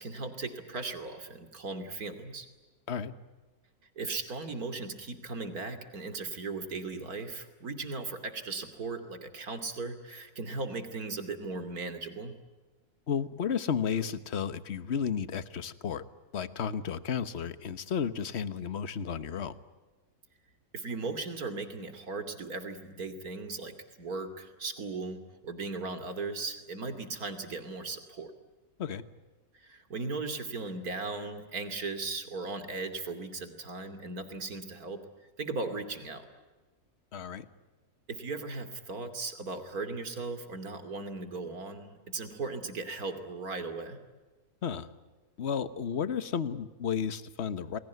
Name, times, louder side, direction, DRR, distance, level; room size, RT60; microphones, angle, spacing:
voice 1, 0.0-2.5 4.0-12.3 20.7-23.7 24.0-28.3 29.5-36.2 38.1-44.0, right 3 dB, 65° right, 8 dB, 3.2 m, -37 dB
voice 2, 13.1-16.0 16.3-19.5 28.8-29.0 37.1-37.4 44.6-44.9 45.4-47.8, left 7 dB, 45° left, 14 dB, 1.3 m, -33 dB
29.5 x 21.0 x 9.3 m, 1.3 s
omnidirectional pair, 1.7 m